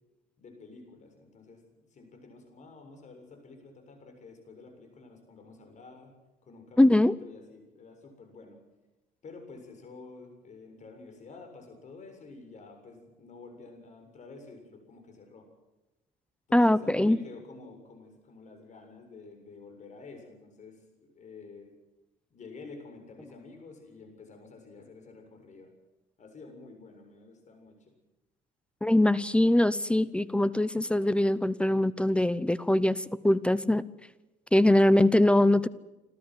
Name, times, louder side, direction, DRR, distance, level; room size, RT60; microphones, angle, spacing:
voice 1, 0.4-1.6 1.9-6.1 6.4-8.6 9.2-15.5 16.5-21.7 22.3-25.7 26.2-27.9, left 3 dB, 45° left, 5 dB, 7.1 m, -49 dB
voice 2, 6.8-7.1 16.5-17.2 28.8-33.8 34.5-35.7, left 1 dB, 5° left, 18 dB, 0.7 m, -22 dB
28.0 x 13.0 x 9.6 m, 1.0 s
cardioid pair, 110°, 17 cm